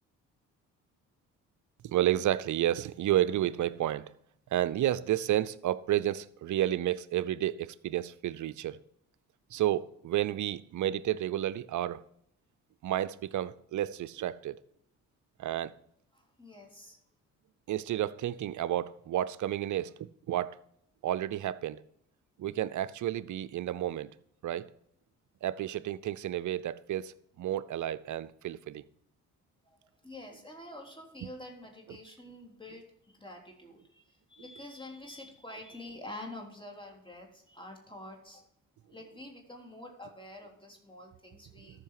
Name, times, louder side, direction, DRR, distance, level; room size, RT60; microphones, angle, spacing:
voice 1, 1.8-4.1 4.5-8.8 9.5-12.0 12.8-14.6 15.4-15.7 17.7-20.6 21.0-21.8 22.4-24.1 24.4-24.7 25.4-28.8, right 12 dB, 55° right, 0.6 m, -31 dB
voice 2, 16.1-17.0 29.6-38.5 38.9-41.8, left 1 dB, 15° left, 3.3 m, -47 dB
13.5 x 5.7 x 4.8 m
hypercardioid pair, 45°, 37 cm